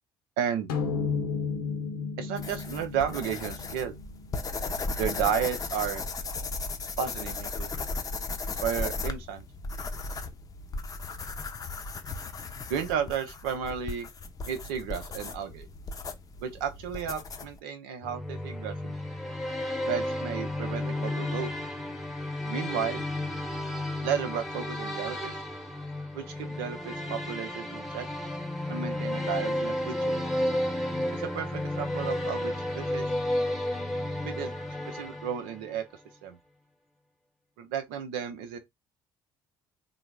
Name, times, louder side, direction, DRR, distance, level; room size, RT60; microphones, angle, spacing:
voice 1, 0.4-0.7 2.2-3.9 5.0-6.0 7.0-7.7 8.6-9.5 12.7-14.1 14.5-15.7 16.4-18.9 19.8-21.5 22.4-23.0 24.0-25.4 26.1-28.1 28.7-30.2 31.1-33.1 34.2-34.5 34.9-35.8 36.2-36.4 37.6-38.6, right 8 dB, 65° right, 0.7 m, -33 dB
sound 1, 0.7-5.3, left 5 dB, 70° left, 0.7 m, -33 dB
sound 2, 2.4-17.6, left 3 dB, 30° left, 0.6 m, -36 dB
sound 3, 18.0-35.7, left 1 dB, ahead, 1.0 m, -32 dB
3.8 x 2.1 x 3.4 m
figure-of-eight pair, 50°, 12 cm